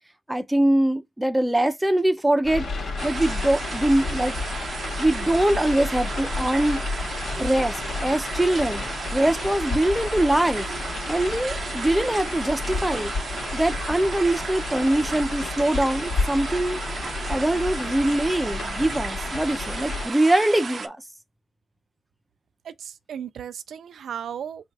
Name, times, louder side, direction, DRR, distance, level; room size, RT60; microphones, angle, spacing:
voice 1, 0.3-2.7 3.0-4.4 5.0-6.8 7.4-8.8 9.1-10.7 11.1-13.1 13.5-16.8 17.3-21.0, right 1 dB, 5° right, 0.6 m, -23 dB
sound 1, 2.4-20.1, left 3 dB, 70° left, 2.2 m, -31 dB
sound 2, 3.0-20.9, right 5 dB, 45° right, 0.6 m, -34 dB
voice 2, 22.6-24.7, right 8 dB, 85° right, 0.4 m, -36 dB
4.2 x 2.4 x 4.6 m
wide cardioid pair, 140°, 0 cm